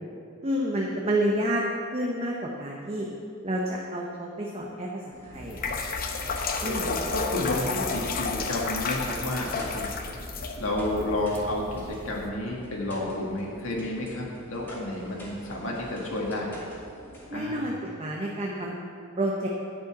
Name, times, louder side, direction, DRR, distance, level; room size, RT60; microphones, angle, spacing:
voice 1, 0.4-1.6 1.9-3.1 3.4-5.8 6.6-6.9 17.3-18.8 19.2-19.5, right 1 dB, 30° right, -2 dB, 0.8 m, -29 dB
sound 1, 5.1-17.3, equal, 10° left, 2.2 m, -47 dB
sound 2, 5.3-12.3, left 4 dB, 40° left, 0.8 m, -32 dB
voice 2, 6.6-9.9 10.6-16.5 17.3-17.7, left 1 dB, 70° left, -2 dB, 1.8 m, -31 dB
10.5 x 5.4 x 8.3 m, 2.5 s
head